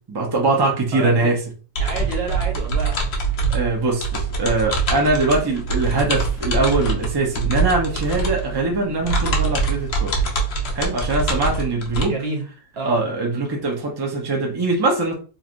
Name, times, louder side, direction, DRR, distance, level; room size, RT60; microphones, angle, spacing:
voice 1, 0.1-1.4 3.5-10.1 10.7-12.1 12.8-15.1, right 2 dB, 25° right, 0 dB, 0.6 m, -22 dB
voice 2, 0.9-1.3 1.8-3.0 12.1-12.4 12.8-13.0, right 3 dB, 60° right, 0 dB, 0.8 m, -28 dB
sound 1, 1.8-12.0, right 3 dB, 60° left, 0.9 m, -24 dB
3.2 x 2.7 x 2.5 m, 0.36 s
omnidirectional pair, 1.3 m